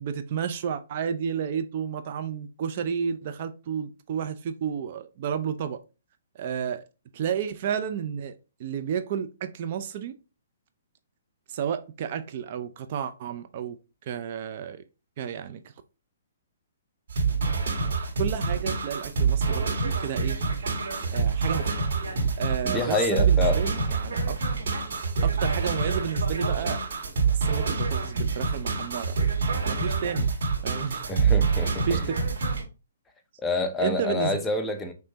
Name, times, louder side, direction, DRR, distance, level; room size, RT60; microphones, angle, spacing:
voice 1, 0.0-5.8 6.3-6.8 7.1-10.2 11.5-13.8 14.1-14.8 15.2-15.6 18.2-20.4 21.1-21.9 22.4-24.4 25.2-26.8 27.3-29.2 29.6-30.3 30.6-31.2 31.9-32.0 33.8-34.4, right 8 dB, 45° right, 0.5 m, -31 dB
sound 1, 17.1-32.6, right 5 dB, 65° right, 1.9 m, -26 dB
voice 2, 22.6-23.6 31.1-32.0 33.4-34.9, left 2 dB, 10° left, 0.6 m, -27 dB
5.1 x 3.2 x 2.8 m
hypercardioid pair, 140°, 0 cm